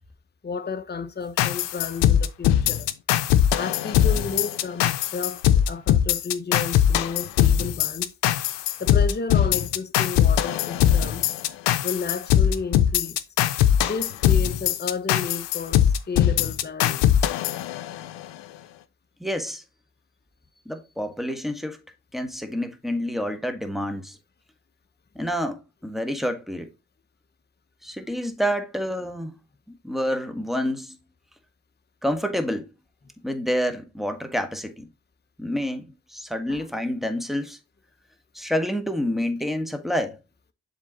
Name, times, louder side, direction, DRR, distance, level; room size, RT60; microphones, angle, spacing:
voice 1, 0.4-2.9 3.6-8.1 8.8-11.3 11.8-13.2 13.8-17.1 36.5-36.6, left 4 dB, 25° left, 0.9 m, -32 dB
sound 1, 1.4-18.3, left 10 dB, 85° left, 0.6 m, -21 dB
voice 2, 19.2-19.6 20.6-21.8 22.1-24.2 25.1-26.7 27.8-29.4 29.7-31.0 32.0-32.7 33.2-34.9 35.4-37.6 38.3-40.2, equal, ahead, 1.5 m, -28 dB
7.2 x 3.8 x 4.0 m
supercardioid pair, 45°, 42 cm